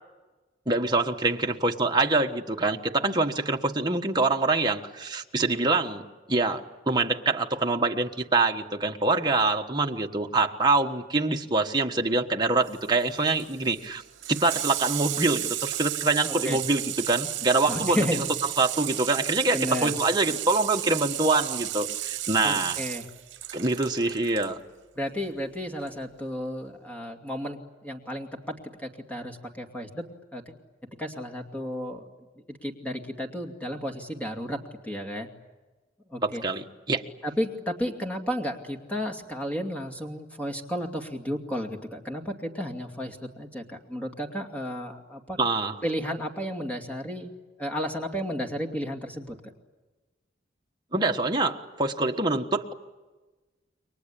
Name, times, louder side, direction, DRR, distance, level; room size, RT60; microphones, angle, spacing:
voice 1, 0.7-14.0 14.3-18.2 18.6-22.8 23.5-24.6 36.2-37.0 45.4-45.7 50.9-52.7, right 3 dB, 25° right, 2 dB, 1.4 m, -25 dB
Water tap faucet / Sink (filling or washing), 12.7-24.5 25.8-25.9, right 13 dB, 85° right, 0.9 m, -33 dB
voice 2, 17.7-18.2 19.5-19.9 22.4-23.1 25.0-30.0 30.3-30.5 31.0-32.1 32.5-34.6 34.8-35.3 36.1-36.4 37.2-45.4 45.8-47.3 47.6-49.4, equal, 10° left, 2 dB, 2.5 m, -33 dB
29.5 x 23.0 x 8.5 m, 1.2 s
head